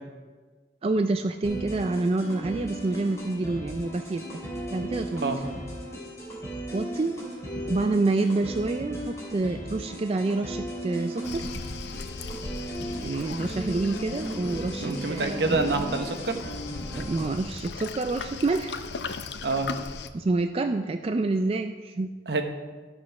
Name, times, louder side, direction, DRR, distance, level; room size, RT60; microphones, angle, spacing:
voice 1, 0.8-4.4 4.7-5.2 6.7-7.1 7.7-11.4 13.0-15.6 16.9-18.8 20.1-22.1, right 2 dB, 35° right, 7 dB, 0.3 m, -27 dB
sound 1, 1.4-17.4, right 1 dB, 15° left, 3.1 m, -36 dB
Waves surf, 11.2-20.1, left 4 dB, 75° left, 0.6 m, -38 dB
voice 2, 14.8-16.4 19.4-19.7 22.3-22.4, right 3 dB, 70° right, 6 dB, 1.0 m, -27 dB
13.5 x 6.2 x 4.8 m, 1.4 s
head